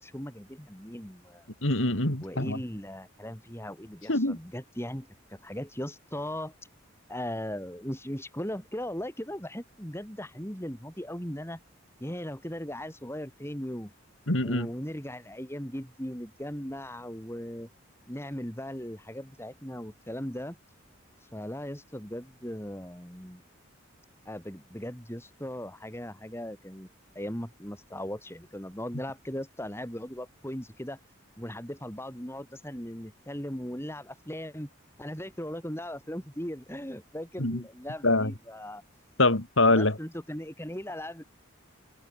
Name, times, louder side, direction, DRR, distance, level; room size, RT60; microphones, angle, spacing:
voice 1, 0.0-1.5 2.2-6.5 7.1-11.6 12.0-13.9 14.4-17.7 18.1-20.6 21.3-23.4 24.2-26.9 27.1-31.0 31.4-34.7 35.0-38.8 39.7-41.2, equal, 10° left, 7.7 m, -38 dB
voice 2, 1.6-2.6 4.1-4.4 14.3-14.7 37.4-37.6 38.0-38.3 39.2-39.9, left 2 dB, 70° left, 3.8 m, -24 dB
head